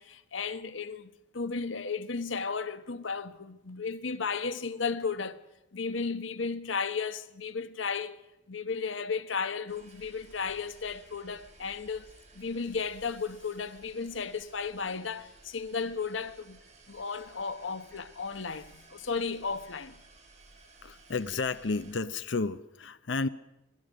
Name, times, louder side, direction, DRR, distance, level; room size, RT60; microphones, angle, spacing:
voice 1, 0.0-5.4 5.7-8.2 8.5-16.6 16.9-19.9, left 5 dB, 85° left, 1.1 m, -34 dB
sound 1, 9.7-21.9, right 2 dB, 35° right, 5.3 m, -57 dB
voice 2, 20.8-23.3, left 3 dB, 65° left, 0.7 m, -32 dB
26.0 x 18.5 x 6.4 m
head